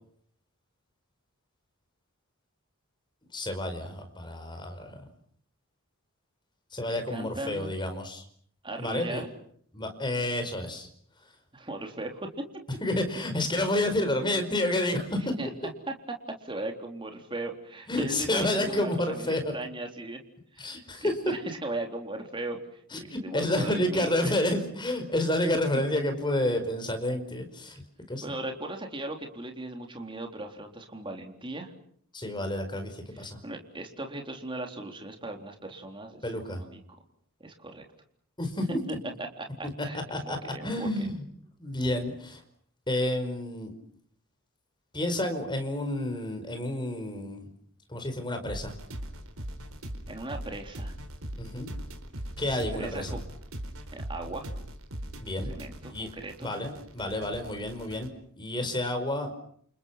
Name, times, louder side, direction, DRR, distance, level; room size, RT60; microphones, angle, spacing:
voice 1, 3.3-5.0 6.7-8.2 8.8-9.2 9.7-10.9 12.8-15.3 17.9-19.5 20.6-21.3 22.9-27.8 28.1-28.2 32.1-33.4 36.2-36.6 38.4-38.8 39.6-39.7 40.1-40.4 40.6-41.2 41.6-42.4 42.9-43.7 44.9-47.5 47.9-48.7 51.4-51.7 52.4-53.1 55.2-55.5 55.9-56.1 56.4-58.1 58.4-59.3, left 1 dB, 20° left, 7 dB, 5.1 m, -30 dB
voice 2, 6.9-7.7 8.6-9.3 11.5-12.5 15.1-15.5 15.9-20.2 20.5-24.3 28.2-31.7 33.1-36.8 37.4-37.8 39.2-41.1 50.1-51.0 52.7-53.2 53.9-54.5 55.4-56.5, right 2 dB, 20° right, 3 dB, 3.8 m, -38 dB
sound 1, 48.4-58.1, equal, 70° right, 4.5 m, -40 dB
29.5 x 29.0 x 5.9 m, 0.63 s
head